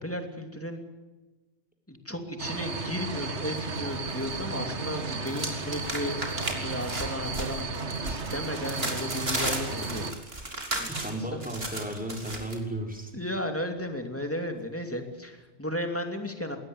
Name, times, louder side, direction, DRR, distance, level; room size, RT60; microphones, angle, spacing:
voice 1, 0.0-0.8 1.9-10.1 10.8-10.9 11.2-11.4 13.1-16.6, left 1 dB, 10° left, 5 dB, 2.7 m, -34 dB
sound 1, 2.4-10.1, right 4 dB, 90° right, 1.8 m, -34 dB
sound 2, 3.6-4.4 4.7-12.6, right 2 dB, 60° right, 3.6 m, -35 dB
voice 2, 10.9-13.1, right 1 dB, 5° right, 2 dB, 4.2 m, -34 dB
21.5 x 17.5 x 9.5 m, 1.2 s
omnidirectional pair, 1.1 m